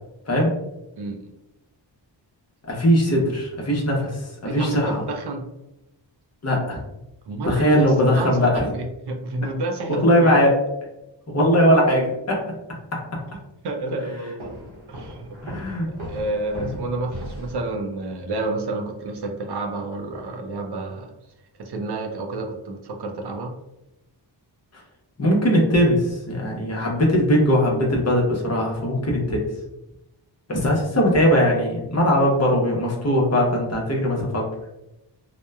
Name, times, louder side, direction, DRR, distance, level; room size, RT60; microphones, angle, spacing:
voice 1, 1.0-1.3 4.4-5.5 7.3-10.4 13.6-14.5 14.9-15.3 16.1-21.1 21.5-23.5, right 2 dB, 65° right, 3 dB, 0.5 m, -29 dB
voice 2, 2.6-4.1 4.4-5.0 6.4-6.8 7.5-8.7 9.9-10.5 11.3-12.4 15.4-15.9 25.2-29.5 30.5-34.5, equal, 35° left, -2 dB, 0.7 m, -20 dB
sound 1, 14.4-18.1, equal, 80° right, 0.9 m, -38 dB
2.8 x 2.1 x 2.2 m, 0.90 s
wide cardioid pair, 105°, 45 cm